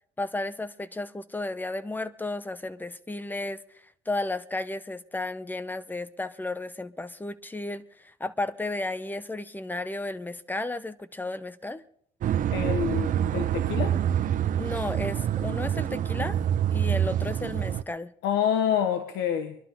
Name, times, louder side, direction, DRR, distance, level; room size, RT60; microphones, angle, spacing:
voice 1, 0.2-3.6 4.1-11.8 14.5-16.4 16.7-18.1, left 2 dB, 10° left, 0.9 m, -33 dB
sound 1, 12.2-17.8, right 10 dB, 50° right, 0.6 m, -26 dB
voice 2, 12.5-14.0 18.2-19.6, left 9 dB, 85° left, 1.4 m, -27 dB
24.5 x 11.5 x 3.8 m
cardioid pair, 110°, 17 cm